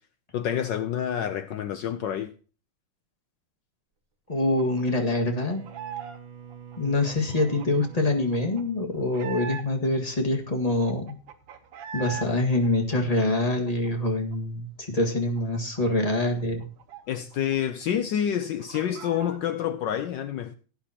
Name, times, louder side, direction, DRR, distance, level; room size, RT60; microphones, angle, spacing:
voice 1, 0.3-2.3 17.1-20.5, left 9 dB, 70° left, 1.1 m, -28 dB
voice 2, 4.3-5.6 6.8-11.2 11.9-16.7, left 2 dB, 20° left, 1.7 m, -25 dB
Bowed string instrument, 4.3-9.6, right 7 dB, 65° right, 2.4 m, -46 dB
sound 1, 4.6-6.2 6.5-10.0 10.4-10.5 10.7-12.3 12.6-14.4 14.7-14.8 15.1-17.6 17.8-17.9 18.3-19.4, right 7 dB, 90° right, 2.0 m, -42 dB
18.0 x 9.2 x 2.9 m
omnidirectional pair, 2.4 m